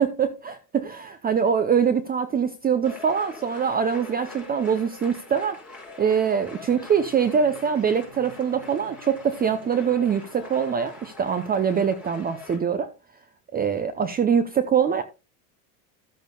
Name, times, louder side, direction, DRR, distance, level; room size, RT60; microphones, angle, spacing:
voice 1, 0.0-5.6 6.0-12.9 13.5-15.0, right 7 dB, 20° right, 0.7 m, -23 dB
sound 1, 2.8-12.6, left 4 dB, 5° right, 5.5 m, -44 dB
sound 2, 6.5-12.5, right 5 dB, 70° right, 5.4 m, -52 dB
14.5 x 8.1 x 2.3 m
supercardioid pair, 110°, 47 cm